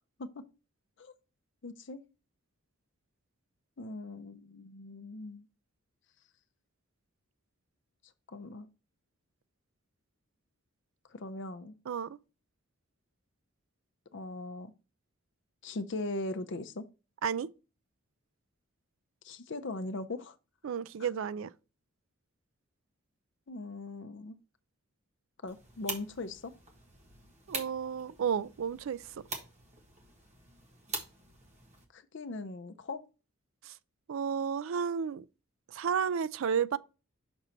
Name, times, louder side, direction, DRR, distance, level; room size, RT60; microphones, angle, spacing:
voice 1, 1.6-2.0 3.8-5.5 8.3-8.7 11.1-11.7 14.1-14.7 15.6-16.8 19.2-20.3 21.0-21.1 23.5-24.4 25.4-26.5 31.9-33.0, left 2 dB, 55° left, 0.6 m, -39 dB
voice 2, 11.9-12.2 17.2-17.5 20.6-21.5 27.5-29.0 33.7-33.8 34.1-35.2 35.7-36.8, right 7 dB, 65° right, 0.3 m, -32 dB
sound 1, 25.5-31.8, right 3 dB, 30° right, 1.3 m, -44 dB
6.1 x 3.8 x 4.3 m
head